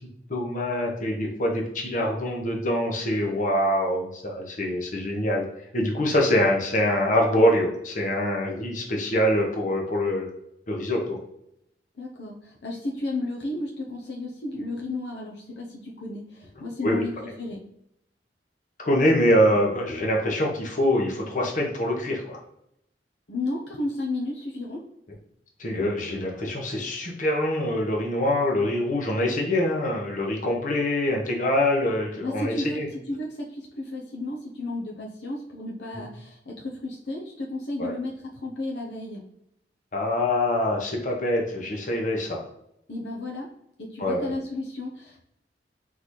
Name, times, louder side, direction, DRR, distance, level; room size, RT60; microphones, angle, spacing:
voice 1, 0.3-5.4 5.7-10.3 10.7-11.2 16.8-17.0 18.8-22.4 25.6-32.9 35.9-36.0 37.8-37.9 39.9-42.4 44.0-44.3, left 1 dB, 50° left, 0 dB, 1.1 m, -24 dB
voice 2, 12.0-17.6 23.3-24.9 32.2-39.2 42.9-43.5 43.8-45.2, left 2 dB, 75° left, -1 dB, 0.8 m, -33 dB
4.0 x 3.9 x 3.2 m, 0.77 s
head